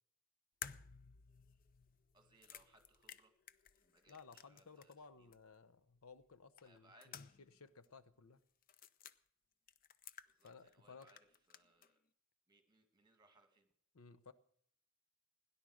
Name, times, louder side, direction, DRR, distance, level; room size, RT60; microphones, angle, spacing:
sound 1, 0.6-5.1 5.3-5.4 6.6-7.6 7.8-7.9 8.6-9.2 9.7-10.8 11.0-11.9, left 8 dB, 40° left, 0.5 m, -55 dB
voice 1, 2.1-3.3 3.8-5.3 6.6-7.4 10.3-11.2 11.5-12.0 12.5-13.7, right 2 dB, 20° right, 7 dB, 1.9 m, -70 dB
voice 2, 4.1-8.4 10.4-11.1 13.9-14.3, left 5 dB, 85° left, 12 dB, 0.8 m, -59 dB
17.0 x 10.5 x 6.4 m, 0.65 s
head